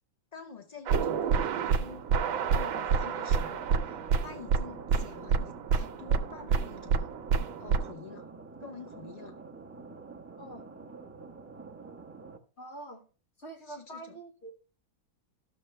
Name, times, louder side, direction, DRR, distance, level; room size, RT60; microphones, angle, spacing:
voice 1, 0.3-2.1 2.5-7.1 7.6-8.3 8.6-9.4 13.6-14.2, left 5 dB, 85° left, 0.3 m, -48 dB
sound 1, 0.9-7.9, right 6 dB, 80° right, 1.5 m, -28 dB
sound 2, 1.8-12.4, right 4 dB, 10° right, 0.9 m, -47 dB
voice 2, 12.6-13.0 13.4-14.6, right 2 dB, 35° left, 1.9 m, -45 dB
14.0 x 6.5 x 3.3 m
omnidirectional pair, 2.1 m